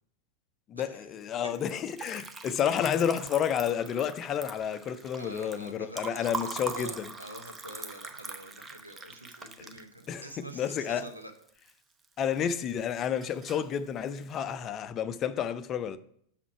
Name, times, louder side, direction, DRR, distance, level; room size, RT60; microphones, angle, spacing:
voice 1, 0.7-7.1 10.1-11.1 12.2-16.0, left 8 dB, 30° left, 0.4 m, -30 dB
Liquid, 1.5-11.7 12.0-12.7 13.0-13.7, right 4 dB, 15° right, 0.6 m, -42 dB
voice 2, 5.2-11.3, right 1 dB, 85° right, 0.8 m, -46 dB
6.1 x 5.9 x 4.6 m
figure-of-eight pair, 90°, 0 cm